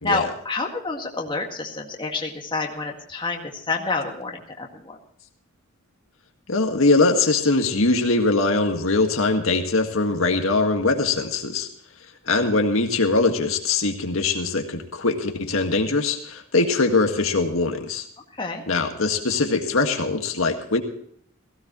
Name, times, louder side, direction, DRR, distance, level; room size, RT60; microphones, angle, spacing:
voice 1, 0.0-4.9 18.4-18.6, left 3 dB, 25° left, 1 dB, 1.9 m, -28 dB
voice 2, 6.5-11.7 12.3-18.1 18.7-20.8, left 3 dB, 75° left, 4 dB, 1.8 m, -22 dB
17.0 x 16.5 x 3.0 m, 0.65 s
head